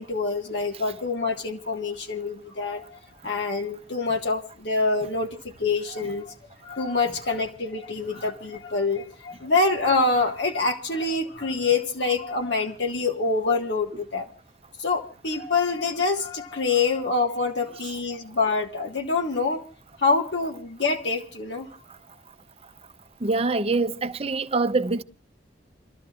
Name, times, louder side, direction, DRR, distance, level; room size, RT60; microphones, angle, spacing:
voice 1, 0.0-3.0 3.2-6.3 6.6-14.3 14.8-19.6 20.0-21.7, left 3 dB, 75° left, 1.6 m, -26 dB
voice 2, 23.2-25.0, right 3 dB, 35° right, 0.6 m, -24 dB
29.5 x 13.5 x 2.4 m
head